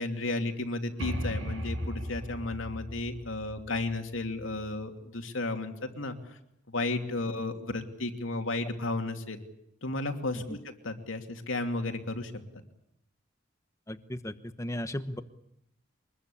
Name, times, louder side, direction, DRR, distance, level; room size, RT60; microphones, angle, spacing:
voice 1, 0.0-6.2 6.7-9.4 9.8-12.3, left 2 dB, 80° left, 5 dB, 2.8 m, -33 dB
sound 1, 1.0-4.7, equal, 70° right, 7.0 m, -37 dB
voice 2, 13.9-15.2, left 1 dB, 15° left, 10 dB, 1.1 m, -36 dB
24.0 x 21.5 x 8.6 m, 0.78 s
head